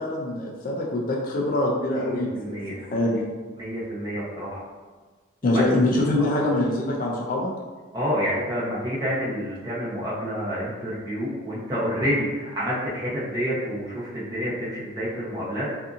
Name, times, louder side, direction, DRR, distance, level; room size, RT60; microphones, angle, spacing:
voice 1, 0.0-2.6 2.9-3.2 5.4-7.5, left 1 dB, 45° left, -3 dB, 0.3 m, -24 dB
voice 2, 2.0-2.8 3.6-4.6 5.4-5.8 6.3-6.4 7.9-15.7, equal, 20° right, -8 dB, 0.8 m, -28 dB
2.6 x 2.5 x 2.4 m, 1.4 s
head